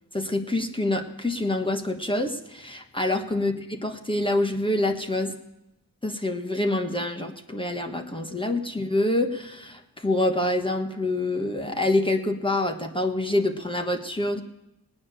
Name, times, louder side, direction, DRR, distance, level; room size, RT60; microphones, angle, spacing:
voice 1, 0.1-5.3 6.0-14.4, left 1 dB, 15° left, 4 dB, 1.3 m, -26 dB
18.0 x 9.6 x 6.8 m, 0.92 s
cardioid pair, 85°, 36 cm